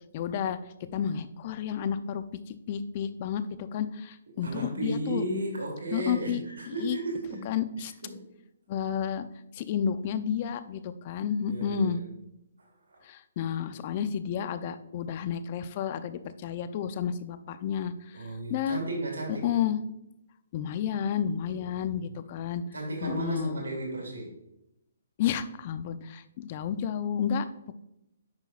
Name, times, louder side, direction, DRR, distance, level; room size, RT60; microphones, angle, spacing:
voice 1, 0.1-0.6 0.9-5.2 5.9-6.4 6.7-7.0 7.5-7.9 8.7-9.3 9.5-12.0 13.0-18.8 19.4-19.8 20.5-22.6 23.0-23.6 25.2-27.5, left 8 dB, 40° left, 12 dB, 0.5 m, -31 dB
voice 2, 4.3-7.4 8.0-8.3 11.5-12.1 12.6-13.0 18.1-19.6 21.5-22.1 22.7-24.4, right 2 dB, 85° right, 0 dB, 2.7 m, -35 dB
9.6 x 5.8 x 2.4 m, 0.84 s
hypercardioid pair, 145°, 0 cm